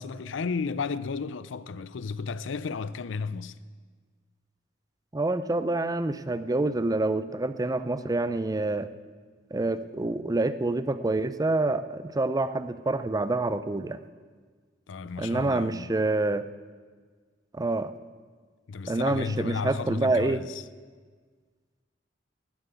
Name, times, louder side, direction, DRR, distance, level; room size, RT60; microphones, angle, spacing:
voice 1, 0.0-3.6 14.9-16.0 18.7-20.6, left 5 dB, 70° left, 0.5 m, -33 dB
voice 2, 5.1-8.9 9.5-14.0 15.2-16.5 17.5-17.9 18.9-20.4, right 2 dB, 20° right, 0.4 m, -27 dB
12.5 x 7.4 x 9.1 m
head